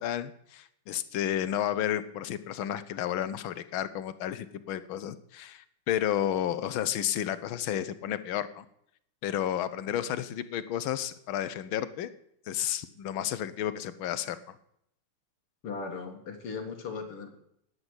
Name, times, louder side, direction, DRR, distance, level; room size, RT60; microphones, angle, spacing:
voice 1, 0.0-8.6 9.2-12.1 12.5-14.5, left 11 dB, 70° left, 13 dB, 1.6 m, -32 dB
voice 2, 15.6-17.3, left 4 dB, 90° left, 5 dB, 2.8 m, -37 dB
11.5 x 9.6 x 8.1 m, 0.73 s
omnidirectional pair, 2.4 m